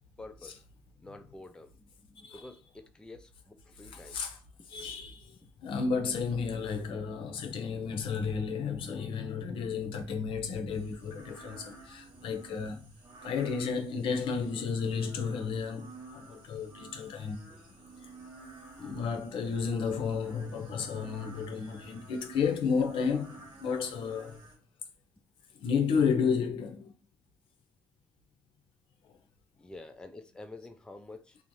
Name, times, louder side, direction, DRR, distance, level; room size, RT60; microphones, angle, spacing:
voice 1, 0.2-0.6 1.0-1.7 2.3-4.2 4.7-4.9 5.4-5.8 17.5-17.6 29.6-31.4, left 2 dB, 10° left, 0.4 m, -49 dB
voice 2, 3.9-4.4 4.7-5.3 5.6-12.8 13.2-17.4 18.8-24.4 25.6-26.9, left 5 dB, 75° left, 0.5 m, -32 dB
sound 1, 10.7-24.6, right 3 dB, 65° right, 1.0 m, -52 dB
2.6 x 2.0 x 3.0 m
supercardioid pair, 65°, 9 cm